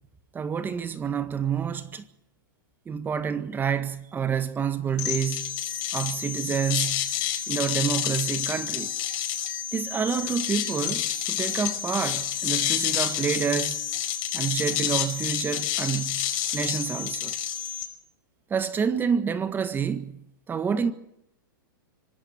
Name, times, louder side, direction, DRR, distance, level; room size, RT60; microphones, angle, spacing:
voice 1, 0.3-2.0 2.9-5.6 5.9-7.1 7.5-8.9 9.7-13.8 14.3-17.3 18.5-20.2 20.5-20.9, right 7 dB, 15° right, 1.6 m, -28 dB
sound 1, 5.0-17.8, left 11 dB, 50° left, 5.1 m, -29 dB
25.0 x 18.5 x 7.2 m
hypercardioid pair, 135°, 12 cm